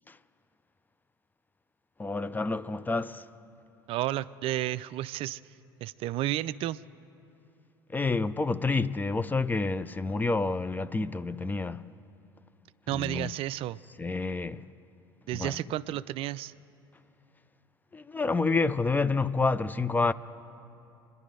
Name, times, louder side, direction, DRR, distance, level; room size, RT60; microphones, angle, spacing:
voice 1, 2.0-3.3 7.9-11.9 12.9-13.3 14.0-14.7 15.3-15.6 17.9-20.1, left 3 dB, 15° left, 0.5 m, -28 dB
voice 2, 3.9-5.4 5.8-6.8 12.9-13.8 15.3-16.5, right 14 dB, 50° right, 0.4 m, -32 dB
26.0 x 11.0 x 5.0 m
hypercardioid pair, 65°, 12 cm